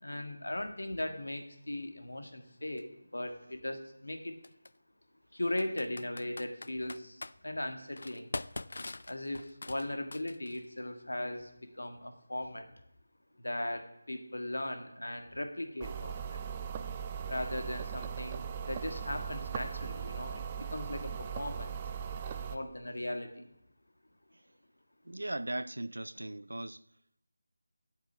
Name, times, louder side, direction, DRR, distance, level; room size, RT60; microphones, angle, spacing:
voice 1, 0.0-4.4 5.3-8.3 9.1-12.7 13.4-16.4 17.3-21.7 22.5-23.5, left 1 dB, 80° left, 1.6 m, -38 dB
Computer keyboard, 2.8-2.9 4.4-4.7 5.6-7.3 8.0-10.6, left 2 dB, 60° left, 0.4 m, -42 dB
sound 1, 15.8-22.6, right 7 dB, 20° right, 0.6 m, -39 dB
voice 2, 25.1-26.8, right 1 dB, 80° right, 0.4 m, -38 dB
8.2 x 7.7 x 7.9 m
figure-of-eight pair, 165°, 0 cm